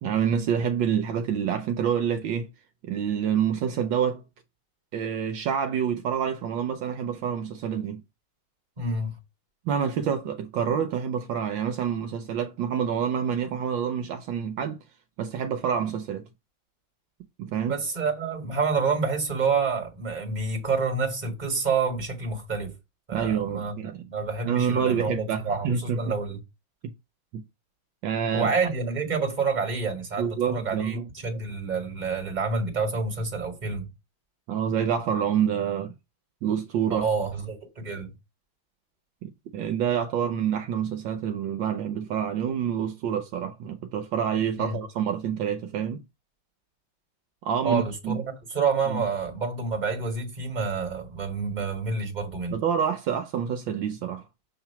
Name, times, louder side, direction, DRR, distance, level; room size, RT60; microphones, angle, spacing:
voice 1, 0.0-2.5 2.8-4.2 4.9-8.0 9.7-14.8 15.2-16.3 17.4-17.8 23.1-24.1 24.4-26.1 26.8-26.9 27.3-27.4 28.0-28.5 30.2-31.1 34.5-35.9 36.4-37.1 39.2-46.0 47.4-48.2 48.9-49.0 52.5-54.2, right 8 dB, 75° right, 1.4 m, -27 dB
voice 2, 8.8-9.2 17.7-22.7 23.1-23.8 24.1-26.4 28.3-33.9 36.9-38.1 44.6-44.8 47.6-52.6, right 4 dB, 20° right, 1.9 m, -28 dB
7.3 x 3.0 x 5.7 m
omnidirectional pair, 2.2 m